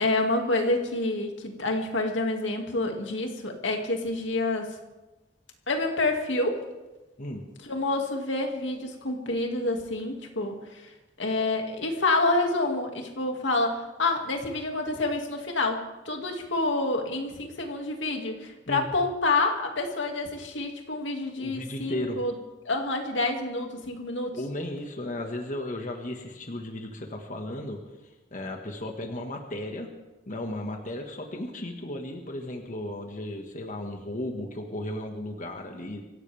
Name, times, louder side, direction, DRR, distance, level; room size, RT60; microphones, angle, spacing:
voice 1, 0.0-4.8 5.7-6.6 7.6-10.9 11.2-22.3 22.6-24.4, left 2 dB, 85° left, 3 dB, 2.3 m, -28 dB
voice 2, 21.4-22.2 24.3-27.8 28.3-29.9 30.3-36.0, left 1 dB, 45° left, 3 dB, 1.7 m, -35 dB
25.0 x 16.0 x 3.5 m, 1.1 s
head